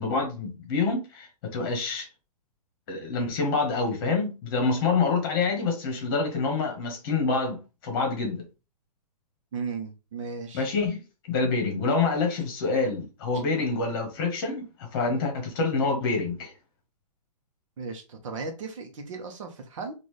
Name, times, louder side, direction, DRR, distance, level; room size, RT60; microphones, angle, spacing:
voice 1, 0.0-2.1 2.9-8.4 10.5-11.0 11.3-16.5, left 4 dB, 35° left, 1.4 m, -27 dB
voice 2, 9.5-10.7 13.3-13.4 17.8-19.9, right 4 dB, 55° right, 1.0 m, -36 dB
4.0 x 2.6 x 3.2 m
hypercardioid pair, 165°, 20 cm